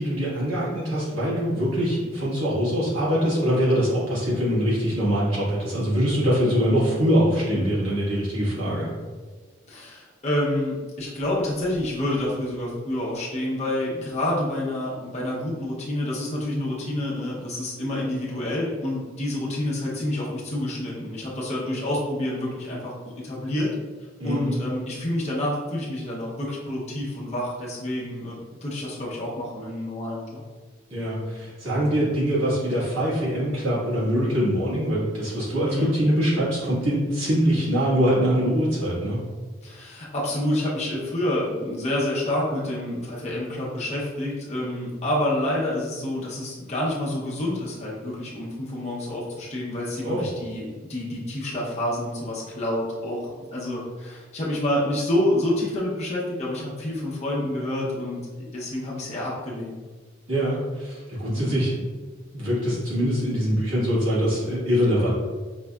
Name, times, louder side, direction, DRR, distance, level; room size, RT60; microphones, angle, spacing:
voice 1, 0.0-8.9 24.2-24.6 30.9-39.2 50.0-50.3 60.3-61.8 62.3-65.1, equal, 80° right, -8 dB, 1.5 m, -23 dB
voice 2, 9.7-23.7 24.2-30.4 31.8-32.0 35.6-35.9 39.6-59.8 61.3-61.6, left 1 dB, 35° left, -5 dB, 0.8 m, -28 dB
5.2 x 2.4 x 2.2 m, 1.4 s
head